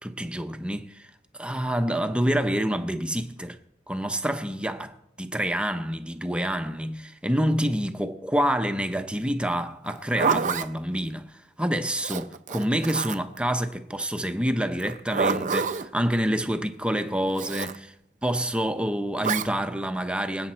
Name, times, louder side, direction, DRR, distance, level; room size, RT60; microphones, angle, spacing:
voice 1, 0.0-3.6 3.9-17.9 18.2-20.5, equal, 5° right, 0.7 m, -27 dB
Zipper (clothing), 9.8-10.7 12.0-13.4 14.8-15.9 17.4-17.8 19.2-19.5, right 5 dB, 40° right, 0.5 m, -27 dB
25.5 x 8.5 x 4.4 m
head